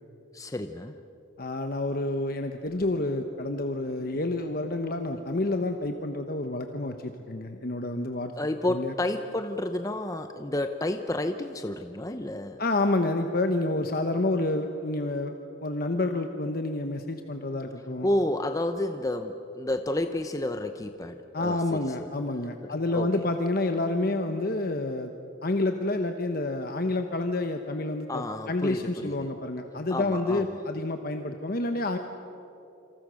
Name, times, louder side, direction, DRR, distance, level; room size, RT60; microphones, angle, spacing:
voice 1, 0.3-1.0 8.4-12.6 18.0-22.1 22.6-23.3 28.1-29.3 29.9-30.5, left 1 dB, 20° left, 8 dB, 0.7 m, -31 dB
voice 2, 1.4-8.3 8.7-8.9 12.6-15.3 15.6-18.1 21.3-25.1 25.4-32.0, left 2 dB, 50° left, 6 dB, 1.1 m, -29 dB
27.5 x 26.5 x 6.4 m, 3.0 s
head